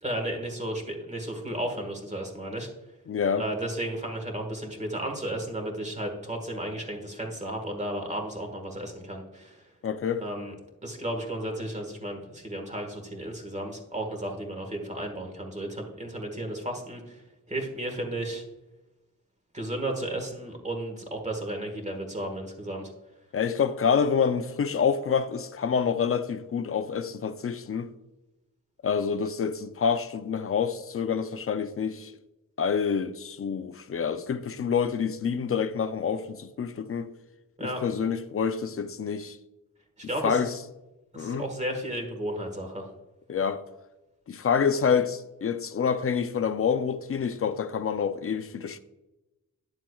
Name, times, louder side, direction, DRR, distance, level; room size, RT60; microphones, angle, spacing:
voice 1, 0.0-2.7 3.4-9.6 10.2-10.5 10.8-17.2 17.5-18.4 19.5-22.9 37.6-37.8 40.0-40.4 41.1-42.9, right 1 dB, 20° right, 1.5 m, -33 dB
voice 2, 3.1-3.4 9.8-10.2 23.3-27.9 28.8-32.1 32.6-37.1 37.6-39.4 40.2-40.5 41.2-41.5 43.3-43.7 44.3-48.8, left 6 dB, 45° left, 0.4 m, -27 dB
9.8 x 7.3 x 2.3 m
wide cardioid pair, 135°, 32 cm